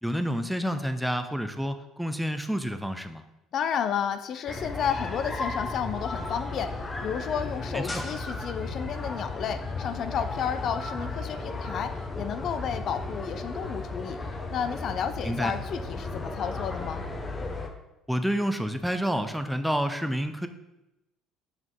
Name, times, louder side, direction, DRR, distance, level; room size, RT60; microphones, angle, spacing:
voice 1, 0.0-3.2 7.7-8.0 15.2-15.5 18.1-20.5, equal, ahead, 8 dB, 0.6 m, -29 dB
voice 2, 3.5-14.2 14.5-17.0, left 8 dB, 55° left, 10 dB, 0.4 m, -32 dB
sound 1, 4.5-17.7, left 3 dB, 25° left, 0.9 m, -35 dB
5.9 x 5.1 x 3.8 m, 0.92 s
supercardioid pair, 80°, 0 cm